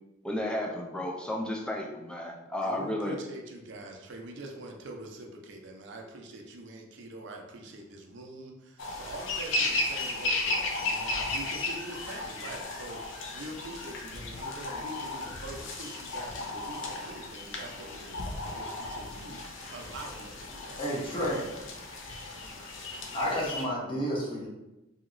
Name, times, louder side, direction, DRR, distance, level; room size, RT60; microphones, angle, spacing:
voice 1, 0.2-3.2, left 1 dB, 5° left, 0 dB, 0.4 m, -33 dB
voice 2, 2.6-20.8, right 2 dB, 65° right, 2 dB, 0.5 m, -44 dB
sound 1, 8.8-23.6, left 2 dB, 70° left, 0.5 m, -35 dB
voice 3, 20.8-21.4 23.1-24.5, equal, 25° left, -5 dB, 0.9 m, -30 dB
2.8 x 2.8 x 2.5 m, 0.97 s
head